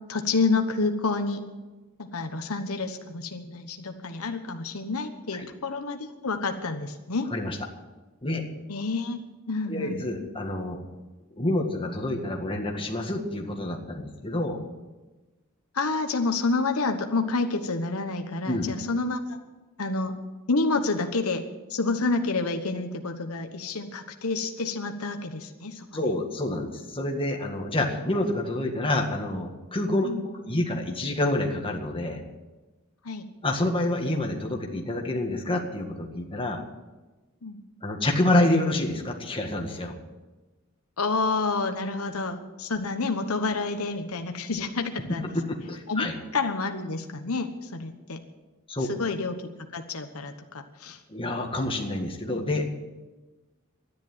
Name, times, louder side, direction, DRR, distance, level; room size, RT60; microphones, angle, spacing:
voice 1, 0.1-1.4 2.0-7.3 8.7-9.2 9.5-10.0 15.7-19.4 19.8-20.2 20.5-21.4 21.7-25.9 30.0-30.3 33.0-33.2 37.4-37.6 41.0-45.4 45.9-46.1 46.3-48.2 48.9-49.4 49.7-51.0, left 3 dB, 85° left, 6 dB, 1.2 m, -29 dB
voice 2, 9.7-10.8 11.4-14.6 18.5-18.7 25.9-32.2 33.4-36.6 37.8-39.9 45.2-46.1 48.7-48.9 51.1-52.7, left 1 dB, 25° left, 1 dB, 1.9 m, -28 dB
12.5 x 10.5 x 8.9 m, 1.2 s
head